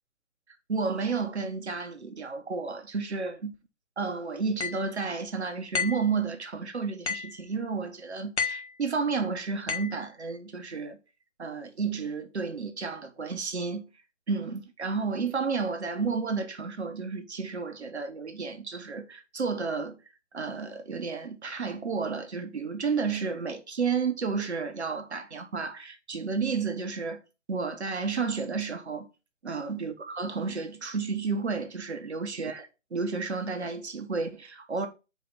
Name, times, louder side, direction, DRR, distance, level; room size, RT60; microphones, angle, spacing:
voice 1, 0.7-3.5 4.0-11.0 11.4-13.9 14.3-20.0 20.3-27.2 27.5-29.1 29.4-34.9, right 4 dB, 60° right, 1.3 m, -31 dB
sound 1, 4.6-4.8 5.7-6.1 7.1-7.4 8.4-8.7 9.7-10.0, left 5 dB, 60° left, 1.6 m, -31 dB
6.0 x 4.7 x 4.1 m
figure-of-eight pair, 140°, 37 cm